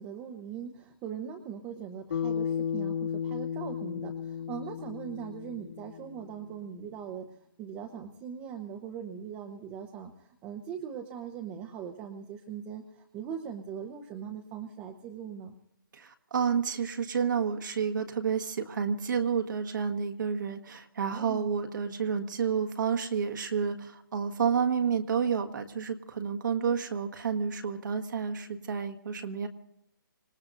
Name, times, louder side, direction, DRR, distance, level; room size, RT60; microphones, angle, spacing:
voice 1, 0.0-7.3 7.6-10.1 10.4-12.8 13.1-15.5 21.1-21.5, right 8 dB, 15° right, 3 dB, 0.9 m, -40 dB
Bass guitar, 2.1-6.5, left 8 dB, 65° left, 2.7 m, -34 dB
voice 2, 15.9-29.5, right 6 dB, 60° right, 5 dB, 1.6 m, -30 dB
26.5 x 19.0 x 2.6 m, 0.81 s
hypercardioid pair, 165°, 12 cm